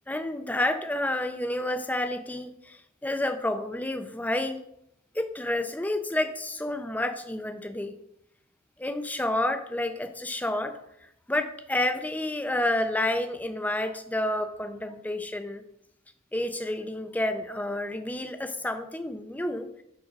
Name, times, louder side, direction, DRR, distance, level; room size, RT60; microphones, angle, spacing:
voice 1, 0.1-4.6 5.1-7.9 8.8-10.8 11.3-15.6 16.3-19.8, left 1 dB, 10° left, 8 dB, 0.6 m, -29 dB
8.7 x 3.9 x 6.0 m, 0.77 s
head